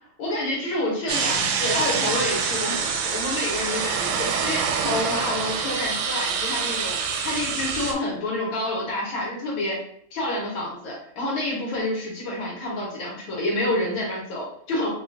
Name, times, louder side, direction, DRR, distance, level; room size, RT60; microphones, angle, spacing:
voice 1, 0.2-6.9 7.2-9.8 10.1-14.9, left 1 dB, 65° left, -4 dB, 1.8 m, -28 dB
sound 1, 1.1-7.9, right 6 dB, 75° right, 1.2 m, -26 dB
4.9 x 2.4 x 2.4 m, 0.64 s
omnidirectional pair, 2.4 m